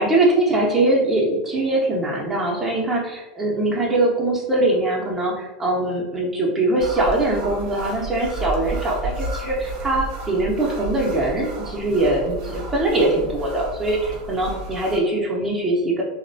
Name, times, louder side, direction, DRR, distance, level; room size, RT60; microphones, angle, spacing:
voice 1, 0.0-16.0, right 2 dB, 10° right, -4 dB, 0.7 m, -22 dB
sound 1, 6.8-15.0, right 2 dB, 55° right, 0.6 m, -32 dB
2.8 x 2.0 x 2.7 m, 1.1 s
hypercardioid pair, 100°, 3 cm